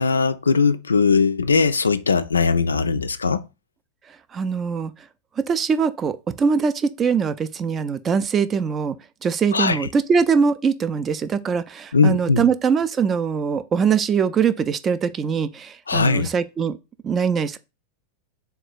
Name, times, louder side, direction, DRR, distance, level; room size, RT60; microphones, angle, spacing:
voice 1, 0.0-3.5 9.5-9.9 11.9-12.5 15.9-16.3, left 4 dB, 75° left, 0.3 m, -19 dB
voice 2, 4.3-4.9 5.4-9.0 9.2-16.8 17.0-17.6, right 6 dB, 25° right, 0.3 m, -22 dB
3.9 x 2.3 x 4.6 m
figure-of-eight pair, 90°, 0 cm